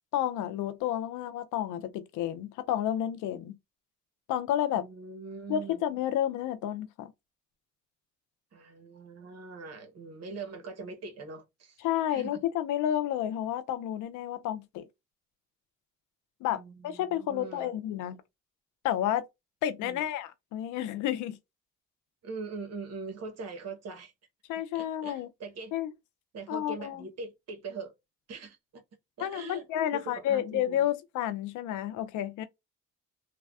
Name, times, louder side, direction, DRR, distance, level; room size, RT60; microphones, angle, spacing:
voice 1, 0.1-3.6 4.3-4.8 5.5-7.1 11.8-14.9 16.4-18.2 18.8-19.3 19.6-21.4 24.5-25.3 25.7-25.9 26.5-27.0 29.2-32.5, left 11 dB, 90° left, 0.5 m, -31 dB
voice 2, 4.7-5.8 8.5-11.8 12.1-12.4 16.5-17.7 19.8-20.0 22.2-24.1 24.7-25.7 26.3-27.9 28.3-28.8 29.2-29.6 29.9-30.9, right 4 dB, 55° right, 1.0 m, -42 dB
3.3 x 2.1 x 2.3 m
cardioid pair, 90°, 30 cm